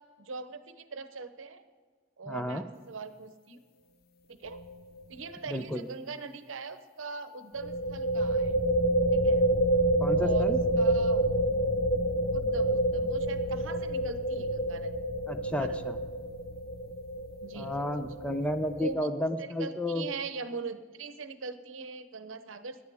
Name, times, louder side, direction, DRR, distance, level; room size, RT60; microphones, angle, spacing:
voice 1, 0.2-1.6 2.2-3.6 4.3-4.6 5.1-8.5 9.1-9.4 10.1-11.2 12.3-14.9 15.5-15.8 17.4-17.7 18.8-19.1 19.4-22.8, right 4 dB, 85° right, 11 dB, 0.8 m, -41 dB
voice 2, 2.3-2.6 5.5-5.9 10.0-10.6 15.3-16.0 17.5-20.1, left 1 dB, 5° left, 8 dB, 0.6 m, -32 dB
sound 1, 4.5-4.7 5.0-5.1 7.6-18.9, right 1 dB, 55° left, 0.6 m, -28 dB
16.5 x 10.5 x 3.5 m, 1.6 s
head